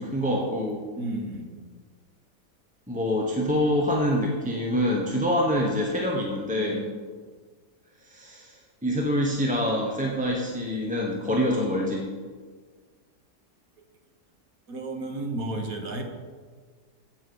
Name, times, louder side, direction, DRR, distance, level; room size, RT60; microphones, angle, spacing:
voice 1, 0.0-0.8 2.9-6.9 8.0-12.1, equal, 5° right, -1 dB, 0.8 m, -26 dB
voice 2, 1.0-1.5 6.7-7.0 14.7-16.0, right 2 dB, 55° right, 3 dB, 1.7 m, -33 dB
8.4 x 7.5 x 7.0 m, 1.5 s
omnidirectional pair, 1.8 m